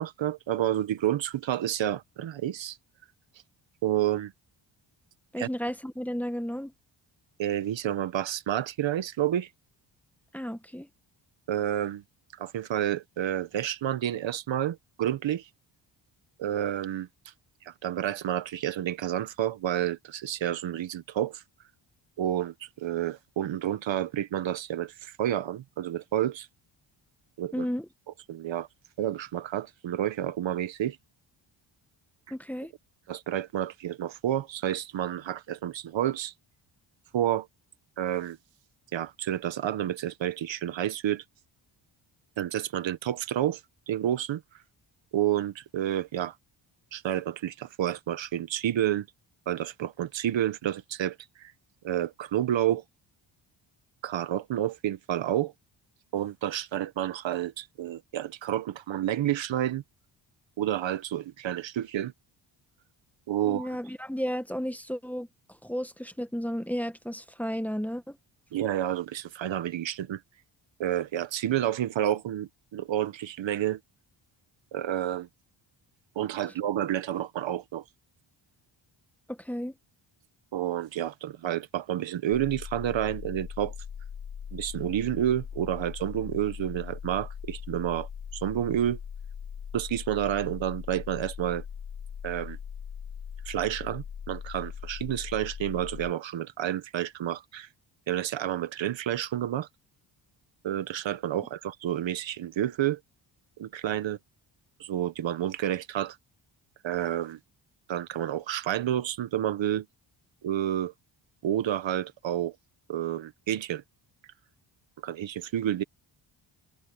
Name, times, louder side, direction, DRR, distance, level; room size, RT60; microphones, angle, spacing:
voice 1, 0.0-2.8 3.8-4.3 5.4-5.5 7.4-9.5 11.5-12.0 12.4-15.5 16.4-17.1 17.6-21.4 22.2-26.5 27.4-27.6 28.3-28.7 29.0-31.0 33.1-36.3 37.1-37.5 38.0-38.4 38.9-41.2 42.4-43.6 43.9-44.4 45.1-46.3 46.9-49.1 49.5-51.5 51.8-52.8 54.0-55.5 56.1-59.8 60.6-62.1 63.3-63.7 68.5-70.2 70.8-73.8 74.7-75.3 76.1-77.8 80.5-83.7 84.5-89.0 89.7-91.6 92.2-92.6 93.4-97.7 98.1-99.7 100.6-103.0 103.6-104.2 104.8-106.2 106.8-107.4 107.9-109.9 110.4-110.9 111.4-112.5 112.9-113.8 115.0-115.8, right 11 dB, 70° right, 1.2 m, -30 dB
voice 2, 5.3-6.7 10.3-10.9 27.5-27.9 32.3-32.7 63.4-65.3 65.6-68.2 79.3-79.7, equal, 5° left, 1.4 m, -33 dB
sound 1, 82.3-96.1, left 7 dB, 60° left, 5.2 m, -40 dB
cardioid pair, 110°, 47 cm